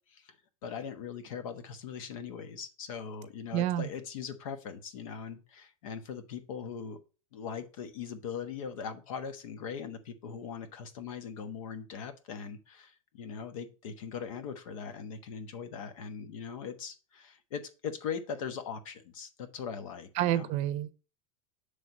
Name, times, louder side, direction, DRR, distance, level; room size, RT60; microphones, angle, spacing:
voice 1, 0.6-7.0 7.3-20.5, left 6 dB, 75° left, 1.2 m, -40 dB
voice 2, 3.5-3.9 20.2-20.9, right 13 dB, 40° right, 0.6 m, -29 dB
7.6 x 3.4 x 5.3 m
supercardioid pair, 145°, 18 cm